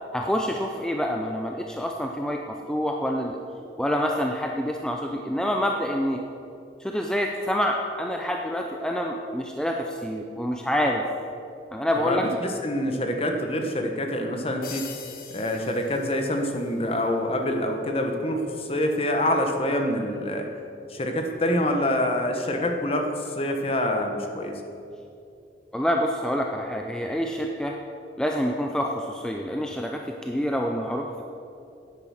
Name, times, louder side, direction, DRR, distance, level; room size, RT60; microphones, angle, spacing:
voice 1, 0.1-3.4 3.8-6.2 6.8-11.0 11.7-12.3 25.7-27.8 28.2-31.2, equal, 5° left, 1 dB, 0.5 m, -27 dB
voice 2, 12.0-14.9 15.3-20.5 20.9-24.6, left 1 dB, 35° left, 3 dB, 1.1 m, -26 dB
sound 1, 14.6-16.7, left 5 dB, 55° left, 1.3 m, -41 dB
10.0 x 8.9 x 6.4 m, 2.6 s
head